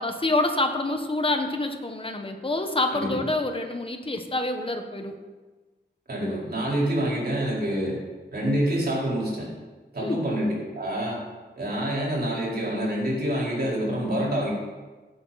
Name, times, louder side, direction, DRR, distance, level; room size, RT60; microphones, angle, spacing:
voice 1, 0.0-5.1 10.0-10.3, left 2 dB, 30° left, 5 dB, 1.4 m, -27 dB
voice 2, 2.9-3.2 6.1-8.0 8.3-9.5 9.9-11.2 11.6-14.5, right 1 dB, 60° right, -4 dB, 4.6 m, -27 dB
17.0 x 8.7 x 4.3 m, 1.3 s
wide cardioid pair, 95°, 19 cm